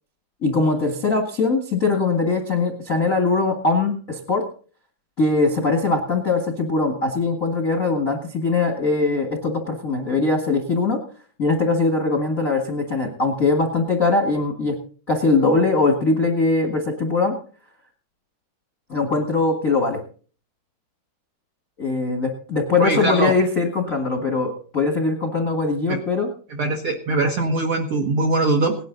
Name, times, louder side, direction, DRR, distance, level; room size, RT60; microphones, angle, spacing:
voice 1, 0.4-4.4 5.2-11.0 11.4-14.8 15.1-17.3 18.9-20.0 21.8-26.3, left 3 dB, 55° left, 3 dB, 0.9 m, -21 dB
voice 2, 22.8-23.3 25.9-26.0 26.5-28.8, right 2 dB, 75° right, 3 dB, 1.2 m, -21 dB
18.0 x 11.0 x 3.9 m, 0.42 s
omnidirectional pair, 4.6 m